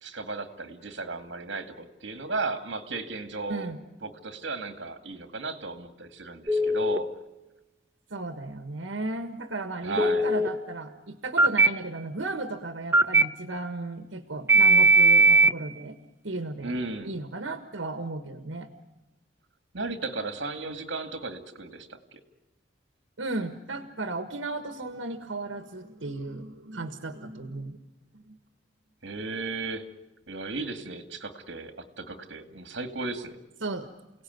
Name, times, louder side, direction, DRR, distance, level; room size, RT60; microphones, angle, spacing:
voice 1, 0.0-3.7 4.0-7.1 9.8-10.3 16.6-17.1 19.7-22.2 29.0-29.9 30.3-33.4, right 3 dB, 70° right, 9 dB, 2.3 m, -35 dB
Telephone, 6.5-7.0 10.0-10.5 11.4-11.7 12.9-13.2 14.5-15.5, right 2 dB, 15° right, 0.8 m, -18 dB
voice 2, 8.1-16.0 16.2-16.8 17.0-18.7 23.2-27.8 28.3-28.4 33.6-33.9, right 2 dB, 90° right, 9 dB, 1.6 m, -35 dB
29.0 x 18.0 x 9.5 m, 1.0 s
head